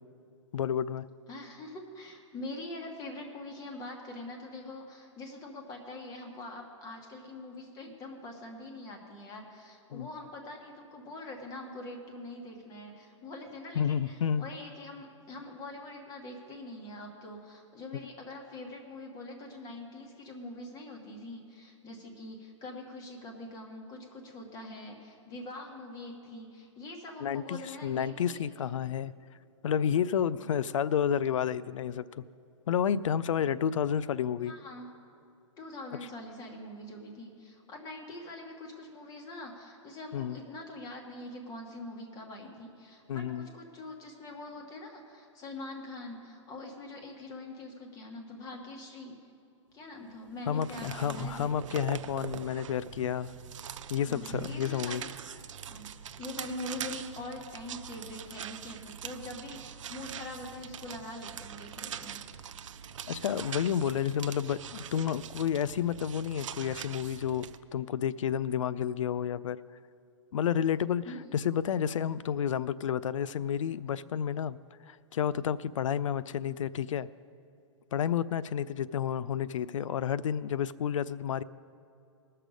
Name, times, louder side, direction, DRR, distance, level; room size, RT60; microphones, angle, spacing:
voice 1, 0.5-1.1 9.9-10.1 13.8-14.5 27.2-29.1 29.6-32.2 32.7-34.5 40.1-40.4 43.1-43.5 50.5-53.3 53.9-55.0 63.1-69.6 70.3-71.1 71.3-74.6 74.9-77.1 77.9-81.4, left 8 dB, 85° left, 18 dB, 0.4 m, -30 dB
voice 2, 1.3-28.4 30.4-30.5 34.4-34.9 35.6-49.2 49.7-51.5 54.0-55.1 55.7-55.9 56.2-62.2 71.0-71.5, left 2 dB, 25° left, 2 dB, 1.6 m, -44 dB
sound 1, 50.3-67.6, right 8 dB, 75° right, 0.5 m, -43 dB
19.5 x 6.6 x 5.1 m, 2.6 s
hypercardioid pair, 140°, 16 cm